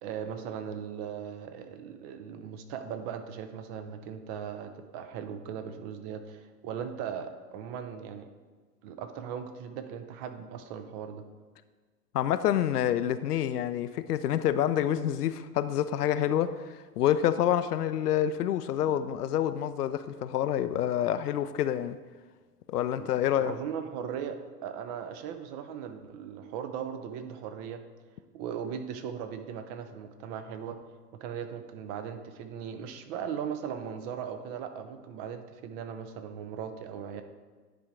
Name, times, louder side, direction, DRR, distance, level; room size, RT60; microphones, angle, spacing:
voice 1, 0.0-8.3 8.8-11.2 23.0-27.8 28.3-30.8 31.2-37.2, right 8 dB, 25° right, 0.5 m, -38 dB
voice 2, 12.1-22.0 22.7-23.5, left 10 dB, 70° left, 0.5 m, -27 dB
10.0 x 3.7 x 4.5 m
figure-of-eight pair, 100°, 48 cm